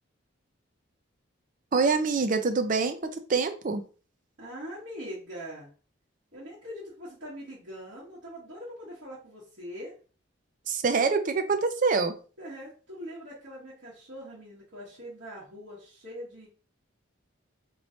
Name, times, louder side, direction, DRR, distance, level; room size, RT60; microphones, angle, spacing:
voice 1, 1.7-3.8 10.7-12.2, right 4 dB, 40° right, 7 dB, 0.4 m, -25 dB
voice 2, 4.4-5.7 6.3-9.9 12.4-16.5, equal, 60° right, -10 dB, 1.4 m, -42 dB
3.1 x 3.0 x 2.7 m, 0.37 s
head